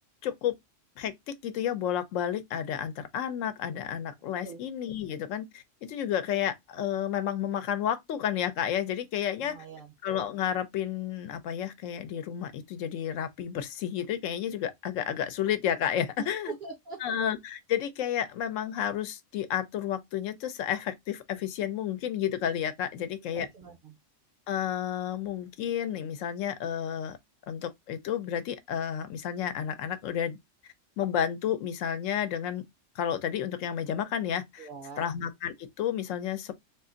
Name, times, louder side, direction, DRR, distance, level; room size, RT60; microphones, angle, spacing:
voice 1, 0.2-0.5 1.0-9.6 10.0-16.5 17.0-23.5 24.5-27.2 27.5-30.4 31.0-32.6 33.0-34.7 35.0-36.5, left 9 dB, 80° left, 0.9 m, -31 dB
voice 2, 9.4-9.9 16.2-17.2 23.0-24.0 34.6-35.1, right 5 dB, 55° right, 0.6 m, -43 dB
2.5 x 2.4 x 3.7 m
omnidirectional pair, 1.3 m